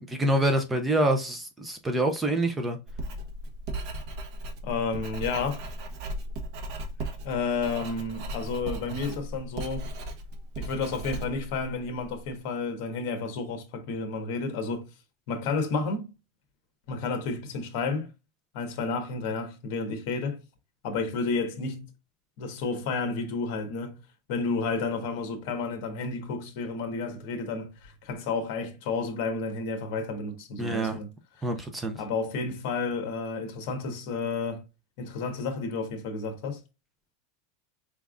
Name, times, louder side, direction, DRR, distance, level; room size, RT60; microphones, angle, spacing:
voice 1, 0.1-2.8 30.6-31.0 31.4-32.0, right 1 dB, 10° right, 0.5 m, -26 dB
Writing, 2.9-12.3, right 1 dB, 45° right, 1.1 m, -37 dB
voice 2, 4.6-5.6 7.2-9.9 10.6-14.9 15.3-16.1 16.9-18.1 18.5-20.4 20.8-21.9 22.4-24.0 24.3-31.1 31.4-31.5 31.9-34.6 35.0-36.6, left 4 dB, 50° left, 1.3 m, -31 dB
5.0 x 3.5 x 2.4 m
supercardioid pair, 165°, 0 cm